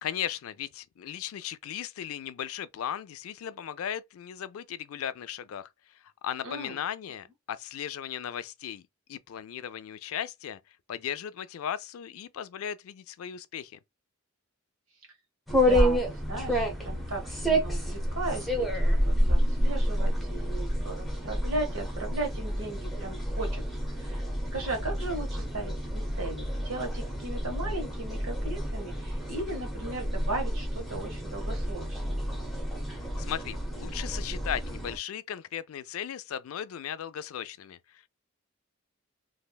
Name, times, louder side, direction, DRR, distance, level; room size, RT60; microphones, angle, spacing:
voice 1, 0.0-5.7 6.2-8.8 9.1-10.6 10.9-13.8 33.2-38.1, left 9 dB, 90° left, 0.4 m, -36 dB
voice 2, 6.4-6.8 15.5-23.6 23.9-24.2 24.5-32.3, right 2 dB, 80° right, 1.3 m, -37 dB
sound 1, 15.5-35.0, equal, ahead, 0.7 m, -29 dB
3.2 x 2.6 x 2.2 m
head